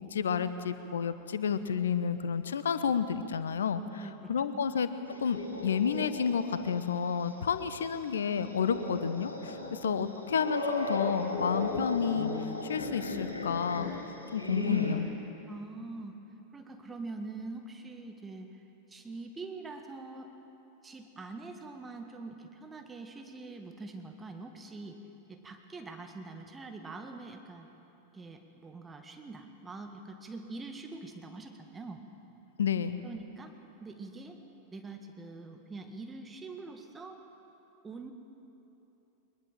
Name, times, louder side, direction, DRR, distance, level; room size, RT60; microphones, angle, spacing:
voice 1, 0.0-4.9 5.2-13.9 14.3-15.1 32.6-33.0, left 7 dB, 65° left, 12 dB, 0.9 m, -30 dB
voice 2, 4.0-4.7 9.8-10.0 15.5-16.2 16.5-18.6 18.9-20.3 20.8-25.0 25.3-27.7 28.1-32.0 33.0-33.5 33.8-34.4 34.7-37.2 37.8-38.1, right 3 dB, 15° right, 5 dB, 1.8 m, -44 dB
sound 1, 5.0-6.7 7.1-7.2 8.2-15.0, left 2 dB, 85° left, 3.8 m, -36 dB
22.5 x 21.0 x 7.4 m, 3.0 s
figure-of-eight pair, 90°, 0 cm